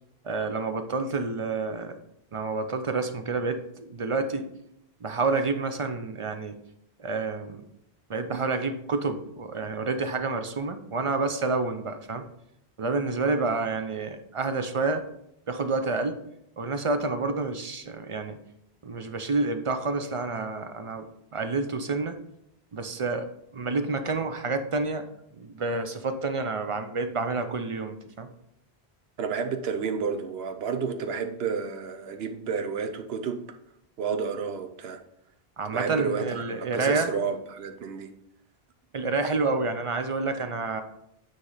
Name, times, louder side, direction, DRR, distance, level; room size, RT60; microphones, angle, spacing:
voice 1, 0.2-2.0 2.3-4.5 5.0-6.6 7.0-7.7 8.1-12.2 12.8-15.1 15.5-16.2 16.6-18.4 18.8-22.2 22.7-23.3 23.5-25.1 25.4-28.3 35.6-37.1 38.9-40.8, right 3 dB, 40° right, 8 dB, 0.5 m, -29 dB
voice 2, 29.2-33.4 34.0-35.0 35.6-38.1, right 6 dB, 75° right, 6 dB, 0.9 m, -31 dB
8.9 x 3.2 x 3.9 m, 0.77 s
omnidirectional pair, 1.1 m